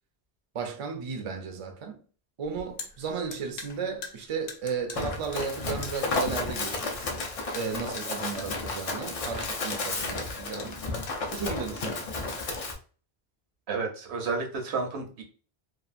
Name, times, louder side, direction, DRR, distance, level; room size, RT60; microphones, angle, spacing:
voice 1, 0.5-2.0 2.4-7.1 7.5-10.8 11.3-12.1, right 5 dB, 50° right, 0.4 m, -34 dB
sound 1, 2.4-11.7, left 5 dB, 70° left, 0.8 m, -44 dB
Run, 4.9-12.7, left 3 dB, 50° left, 0.4 m, -32 dB
voice 2, 13.7-15.2, right 4 dB, 85° right, 1.0 m, -31 dB
2.7 x 2.3 x 2.4 m
omnidirectional pair, 1.1 m